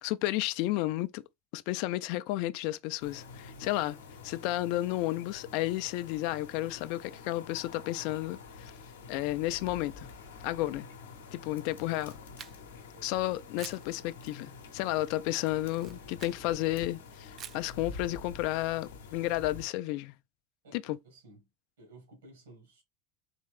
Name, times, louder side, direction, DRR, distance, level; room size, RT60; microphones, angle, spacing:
voice 1, 0.0-1.2 1.5-4.0 4.2-8.7 9.1-10.1 10.4-10.9 11.3-12.2 13.0-20.1 20.7-21.0, left 16 dB, 50° left, 0.3 m, -32 dB
sound 1, 3.0-19.7, left 4 dB, 70° left, 0.8 m, -48 dB
Camera, 11.7-12.9 13.6-13.9 15.6-16.4 17.4-17.7, right 9 dB, 35° right, 0.3 m, -48 dB
voice 2, 20.6-21.5 21.8-22.8, right 2 dB, 70° right, 2.0 m, -55 dB
4.3 x 3.1 x 3.2 m
figure-of-eight pair, 80°, 0 cm